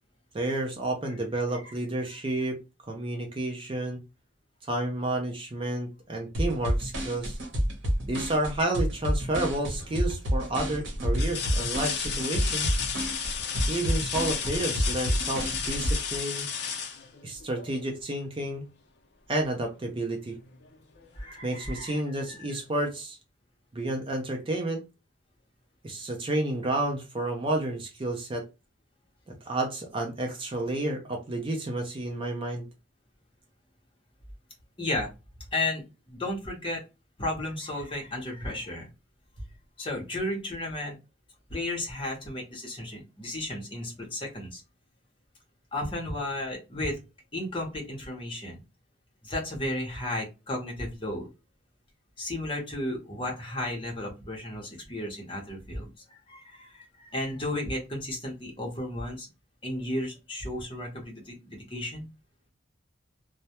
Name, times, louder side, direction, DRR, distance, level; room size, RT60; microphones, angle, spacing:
voice 1, 0.3-2.6 2.9-4.0 4.7-7.4 8.1-12.8 13.7-16.5 17.2-18.6 19.3-20.3 21.4-23.2 23.7-24.8 25.8-28.5 29.5-32.7, right 1 dB, 25° right, 2 dB, 0.4 m, -30 dB
voice 2, 1.3-1.7 21.1-22.6 34.8-35.1 35.5-36.8 37.2-38.9 39.4-39.5 39.8-41.0 41.5-44.6 45.7-47.0 47.3-48.6 49.2-51.3 52.2-59.3 59.6-62.1, left 1 dB, 25° left, 0 dB, 0.8 m, -34 dB
sound 1, 6.3-15.9, equal, 70° right, 0.9 m, -29 dB
sound 2, 9.4-9.9 10.4-10.5 11.1-17.8 19.6-19.7 20.2-21.2 22.5-22.6, left 7 dB, 55° left, 0.5 m, -33 dB
2.2 x 2.1 x 2.7 m, 0.27 s
head